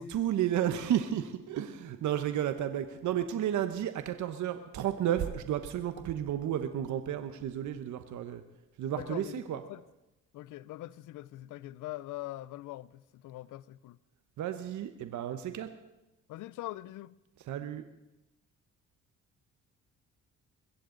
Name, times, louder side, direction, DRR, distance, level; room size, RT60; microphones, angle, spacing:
voice 1, 0.0-8.4 8.8-9.6 14.4-15.7 17.4-17.8, right 10 dB, 75° right, 1.1 m, -32 dB
voice 2, 8.9-9.4 9.7-9.8 10.3-14.0 16.3-17.1, left 16 dB, 80° left, 0.6 m, -42 dB
21.5 x 15.5 x 3.9 m
cardioid pair, 90°, 30 cm